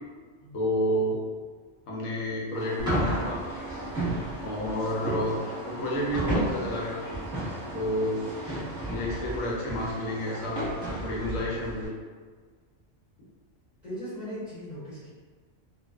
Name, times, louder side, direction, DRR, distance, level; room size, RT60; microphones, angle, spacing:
voice 1, 0.5-1.2 1.9-3.4 4.4-5.4 5.7-7.0 7.7-8.2 8.9-10.7 11.0-11.9, equal, 85° left, -4 dB, 1.1 m, -30 dB
sound 1, 2.5-9.4, right 2 dB, 25° right, 0.4 m, -42 dB
sound 2, 2.8-11.9, right 1 dB, 5° right, 1.0 m, -33 dB
voice 2, 13.8-15.1, equal, 40° left, -14 dB, 1.0 m, -38 dB
2.4 x 2.3 x 2.3 m, 1.5 s
omnidirectional pair, 1.3 m